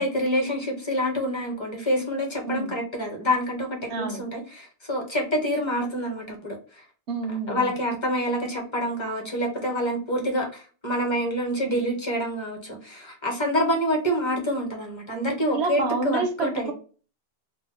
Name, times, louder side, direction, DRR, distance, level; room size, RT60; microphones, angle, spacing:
voice 1, 0.0-6.8 7.5-16.7, equal, 30° left, 0.9 m, -27 dB
voice 2, 3.9-4.2 7.1-7.7 15.5-16.7, right 3 dB, 85° right, 1.0 m, -28 dB
2.7 x 2.0 x 3.9 m
omnidirectional pair, 1.1 m